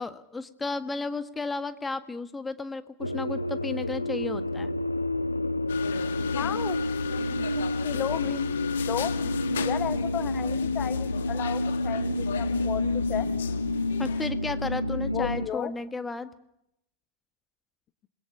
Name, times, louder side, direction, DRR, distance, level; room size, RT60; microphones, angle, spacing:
voice 1, 0.0-4.7 14.0-16.3, left 3 dB, 10° left, 11 dB, 1.6 m, -33 dB
sound 1, 3.0-15.5, left 2 dB, 85° left, 1.1 m, -29 dB
sound 2, 5.7-14.3, left 8 dB, 65° left, 1.8 m, -38 dB
voice 2, 6.3-8.6 8.9-9.1 9.6-13.3 15.1-15.7, left 12 dB, 30° left, 12 dB, 1.0 m, -34 dB
27.5 x 21.5 x 6.9 m, 0.82 s
figure-of-eight pair, 90°, 0 cm